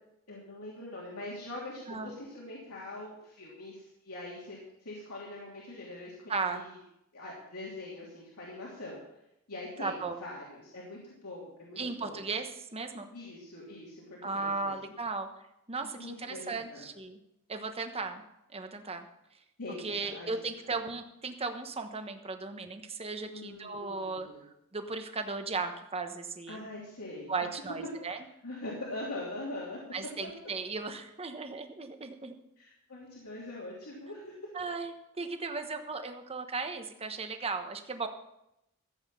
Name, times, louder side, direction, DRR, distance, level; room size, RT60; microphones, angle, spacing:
voice 1, 0.3-6.8 7.1-9.0 9.5-12.2 13.1-14.7 15.8-16.8 19.6-20.3 23.3-24.4 26.5-27.3 28.1-29.8 32.6-34.3, left 2 dB, 75° left, -5 dB, 3.1 m, -43 dB
voice 2, 6.3-6.6 9.8-10.2 11.8-13.1 14.2-15.3 15.7-17.2 17.5-18.2 18.5-19.1 19.8-24.3 24.7-26.7 27.3-28.2 29.9-32.3 34.5-38.1, right 4 dB, 25° right, 6 dB, 1.1 m, -36 dB
14.5 x 8.1 x 5.6 m, 0.83 s
head